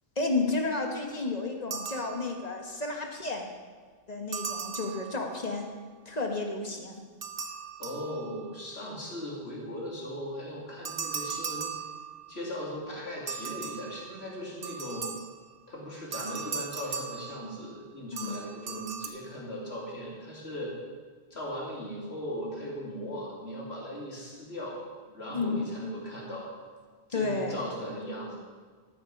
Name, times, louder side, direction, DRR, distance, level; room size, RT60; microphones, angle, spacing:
voice 1, 0.2-3.5 4.1-5.7 6.0-7.0 18.1-18.4 25.3-25.7 27.1-27.6, left 3 dB, 40° left, 3 dB, 1.5 m, -31 dB
sound 1, 1.7-2.6 4.3-5.6 7.2-8.6 10.8-12.5 13.3-15.5 16.1-17.8 18.2-19.1, right 6 dB, 70° right, 1.1 m, -38 dB
voice 2, 7.8-11.8 12.3-15.1 15.7-20.7 21.3-26.5 27.1-28.4, equal, 85° left, -4 dB, 3.1 m, -38 dB
13.0 x 8.8 x 5.3 m, 1.5 s
omnidirectional pair, 1.0 m